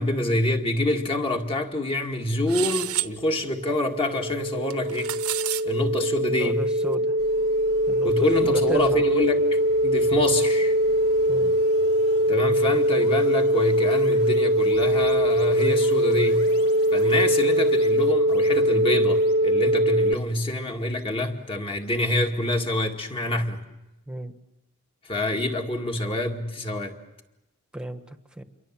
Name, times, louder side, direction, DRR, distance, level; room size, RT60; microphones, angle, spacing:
voice 1, 0.0-5.2 5.6-6.7 8.0-10.7 12.3-16.5 16.9-23.6 25.0-27.0, left 1 dB, 25° left, 3 dB, 2.1 m, -26 dB
sound 1, 2.5-3.1 4.7-5.6, right 15 dB, 75° right, 1.0 m, -29 dB
sound 2, 3.1-20.1, equal, 45° right, 1.0 m, -22 dB
voice 2, 6.3-7.1 7.9-9.0 11.3-11.6 24.1-24.3 27.7-28.4, equal, 5° right, 8 dB, 1.4 m, -34 dB
sound 3, 7.2-22.3, left 1 dB, 75° left, 3.7 m, -48 dB
28.5 x 23.0 x 7.5 m, 0.96 s
head